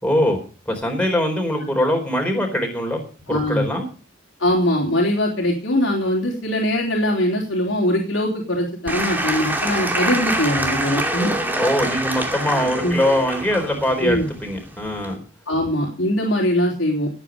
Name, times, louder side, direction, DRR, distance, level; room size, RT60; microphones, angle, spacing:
voice 1, 0.0-0.4 0.7-3.0 3.3-3.9 11.5-15.2, left 1 dB, 5° left, 2 dB, 4.3 m, -22 dB
voice 2, 3.3-3.7 4.4-11.3 12.8-13.0 14.0-14.3 15.5-17.1, left 1 dB, 90° left, -3 dB, 3.8 m, -21 dB
Applause / Crowd, 8.9-15.2, right 1 dB, 10° right, 2.5 m, -25 dB
18.0 x 8.9 x 5.3 m, 0.37 s
head